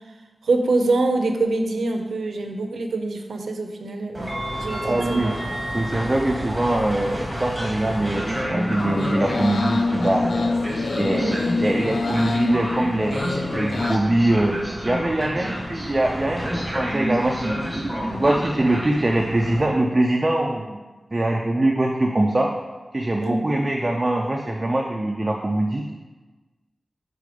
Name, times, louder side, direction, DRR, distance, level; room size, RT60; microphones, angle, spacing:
voice 1, 0.4-4.3 4.6-5.4 11.1-11.4 23.2-23.6, right 2 dB, 90° right, 4 dB, 0.6 m, -24 dB
Train, 4.1-19.6, equal, 10° right, 1.4 m, -30 dB
voice 2, 4.8-5.3 5.7-10.3 11.0-14.5 14.8-20.8 21.1-22.5 22.9-25.9, right 1 dB, 25° right, 1 dB, 0.4 m, -23 dB
sound 1, 8.8-14.0, left 3 dB, 65° left, 0.3 m, -26 dB
4.9 x 4.2 x 5.0 m, 1.3 s
wide cardioid pair, 120°, 0 cm